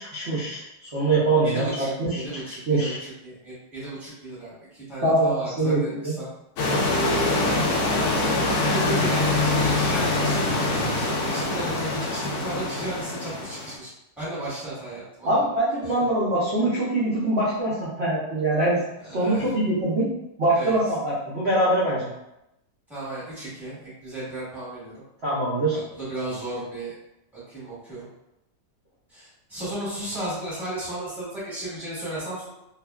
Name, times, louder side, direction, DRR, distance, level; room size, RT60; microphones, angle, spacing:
voice 1, 0.0-3.0 5.0-6.1 15.2-18.8 19.1-20.1 20.4-22.1 25.2-25.8, right 2 dB, 60° right, -9 dB, 0.7 m, -23 dB
voice 2, 1.4-6.3 6.9-7.8 8.6-13.9 14.2-15.4 15.8-15.9 19.0-19.5 20.5-20.8 22.9-24.9 25.7-26.9 27.3-28.1 29.1-32.5, right 1 dB, ahead, -10 dB, 1.1 m, -34 dB
sound 1, 6.6-13.7, left 2 dB, 75° left, 0.7 m, -24 dB
2.6 x 2.4 x 2.2 m, 0.88 s
omnidirectional pair, 1.9 m